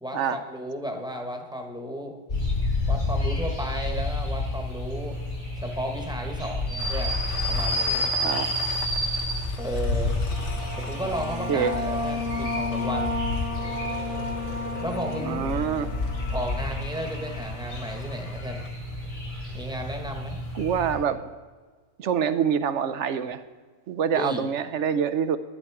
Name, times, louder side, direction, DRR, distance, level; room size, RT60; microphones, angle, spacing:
voice 1, 0.0-2.2 2.9-5.2 5.6-7.2 7.5-8.1 9.6-10.2 10.8-13.2 14.8-15.5 16.3-18.6 19.5-20.4 24.1-24.5, equal, 5° right, 2 dB, 1.1 m, -34 dB
sound 1, 2.3-20.9, left 1 dB, 80° left, 4.8 m, -30 dB
Train, 6.8-18.7, left 5 dB, 65° left, 1.2 m, -42 dB
sound 2, 10.0-17.3, left 2 dB, 25° right, 0.4 m, -33 dB
voice 2, 15.2-15.9 20.5-21.2 22.0-23.4 23.9-25.4, right 7 dB, 65° right, 11 dB, 0.9 m, -25 dB
11.0 x 10.0 x 4.8 m, 1.4 s
omnidirectional pair, 1.4 m